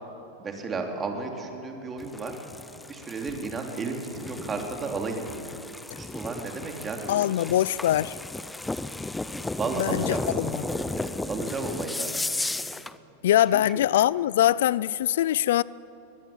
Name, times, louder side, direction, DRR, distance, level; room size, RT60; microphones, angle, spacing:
voice 1, 0.4-2.4 2.9-5.3 6.0-7.4 9.6-12.2 13.5-13.6, right 3 dB, 20° right, 2 dB, 3.2 m, -33 dB
sound 1, 2.0-13.0, left 2 dB, 5° left, 0.6 m, -34 dB
voice 2, 7.1-8.2 9.8-10.6 13.2-15.6, left 12 dB, 80° left, 21 dB, 0.4 m, -23 dB
23.0 x 20.0 x 8.7 m, 2.9 s
supercardioid pair, 145°, 0 cm